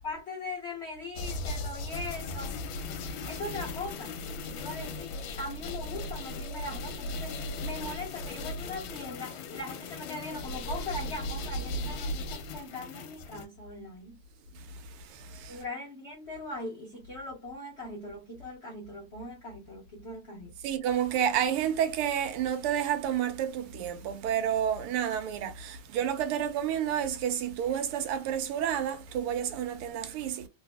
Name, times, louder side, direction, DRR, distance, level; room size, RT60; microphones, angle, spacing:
voice 1, 0.0-2.5 3.3-4.1 4.4-14.2 15.5-20.6, left 2 dB, 90° left, 0.5 m, -40 dB
sound 1, 1.2-13.5, left 2 dB, 70° left, 1.3 m, -37 dB
voice 2, 14.5-15.6 20.6-30.5, right 9 dB, 80° right, 1.6 m, -30 dB
3.4 x 2.7 x 2.2 m
omnidirectional pair, 2.4 m